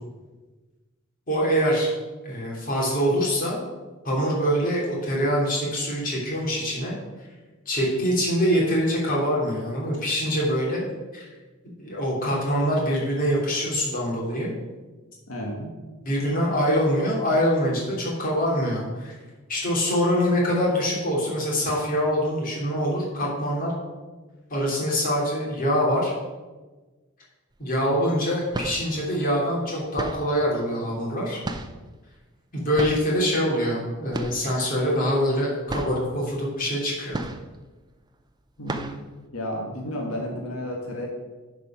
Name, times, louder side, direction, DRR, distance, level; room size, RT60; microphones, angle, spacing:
voice 1, 1.3-1.9 2.2-3.6 4.0-6.9 7.7-10.8 11.1-11.3 11.8-14.5 16.0-19.1 19.5-23.7 24.5-26.1 27.6-31.4 32.5-37.2, equal, 40° left, -4 dB, 2.9 m, -24 dB
voice 2, 15.3-15.7 38.6-38.9 39.3-41.1, equal, 90° left, 0 dB, 1.5 m, -32 dB
sound 1, 27.5-27.7 28.3-29.0 29.9-30.4 31.4-31.9 32.7-33.1 34.1-34.5 34.8-34.9 35.3-35.4 35.7-36.1 37.1-37.7 38.1-38.2 38.6-39.1, right 1 dB, 20° right, 0.6 m, -33 dB
9.8 x 5.0 x 5.8 m, 1.2 s
head